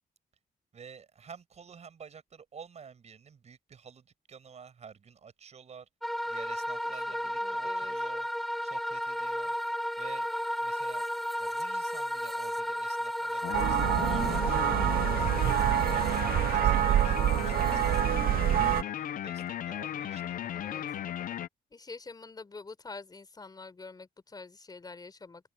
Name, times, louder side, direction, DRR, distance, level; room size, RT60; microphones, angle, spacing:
voice 1, 0.7-5.9 6.3-8.3 8.6-9.5 10.0-10.3 10.6-11.0 11.4-15.4 15.9-20.9, right 6 dB, 45° right, 5.7 m, -51 dB
sound 1, 6.0-18.1, equal, ahead, 0.4 m, -34 dB
voice 2, 7.1-7.9 20.5-20.8 21.7-25.5, left 3 dB, 25° left, 4.2 m, -46 dB
sound 2, 13.4-21.5, left 11 dB, 60° left, 0.6 m, -36 dB
sound 3, 13.5-18.8, right 12 dB, 70° right, 0.6 m, -26 dB
cardioid pair, 140°, 16 cm